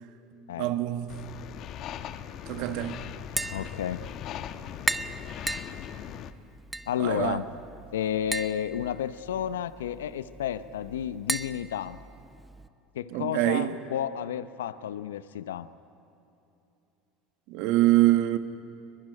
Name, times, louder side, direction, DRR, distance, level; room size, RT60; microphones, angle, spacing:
voice 1, 0.6-1.2 2.5-3.0 7.0-7.4 13.1-13.7 17.5-18.4, right 15 dB, 65° right, 1.4 m, -24 dB
sound 1, 1.1-6.3, left 10 dB, 50° left, 1.1 m, -40 dB
Tap, 3.2-12.7, right 2 dB, 10° right, 0.7 m, -37 dB
voice 2, 3.5-4.0 6.9-7.5 7.9-12.0 12.9-15.7, left 10 dB, 85° left, 0.7 m, -31 dB
22.5 x 21.0 x 10.0 m
hypercardioid pair, 90°, 0 cm